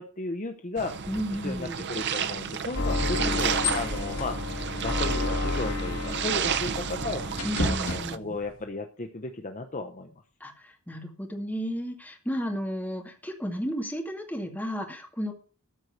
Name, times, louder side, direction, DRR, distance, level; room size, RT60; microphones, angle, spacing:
voice 1, 0.0-1.1 1.4-4.5 4.8-7.2 7.6-10.1, left 2 dB, 35° left, 6 dB, 0.8 m, -35 dB
sound 1, 0.8-8.2, right 7 dB, 50° right, 0.6 m, -32 dB
voice 2, 1.1-1.9 7.4-8.4 10.4-15.3, equal, 5° left, 2 dB, 2.2 m, -33 dB
sound 2, 2.7-7.7, left 3 dB, 75° left, 3.2 m, -31 dB
sound 3, 2.9-8.7, left 3 dB, 60° left, 3.0 m, -37 dB
14.0 x 4.8 x 8.1 m, 0.39 s
head